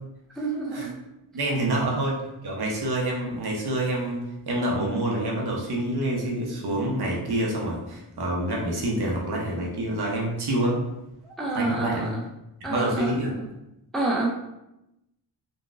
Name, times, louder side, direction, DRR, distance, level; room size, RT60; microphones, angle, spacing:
voice 1, 0.4-1.0 11.2-12.2 12.6-13.5 13.9-14.3, right 2 dB, ahead, -2 dB, 0.4 m, -28 dB
voice 2, 1.3-10.8 11.5-12.1 12.7-13.3, right 1 dB, 65° right, -2 dB, 0.8 m, -27 dB
3.9 x 2.2 x 2.4 m, 0.89 s
wide cardioid pair, 120°, 41 cm